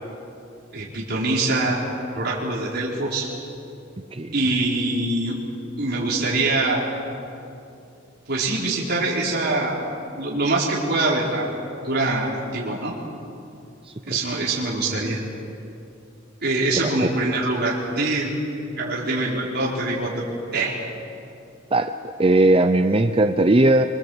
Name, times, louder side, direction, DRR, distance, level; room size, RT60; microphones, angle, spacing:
voice 1, 0.7-1.8 2.1-3.3 4.3-5.4 5.8-6.9 8.3-9.8 10.2-11.5 11.8-12.9 14.1-15.2 16.4-18.3 18.8-20.2 20.5-20.7, right 2 dB, 55° right, -5 dB, 4.6 m, -24 dB
voice 2, 13.8-14.2 16.7-17.2 21.7-23.8, right 2 dB, 30° right, 8 dB, 0.7 m, -19 dB
26.5 x 25.5 x 8.1 m, 2.7 s
head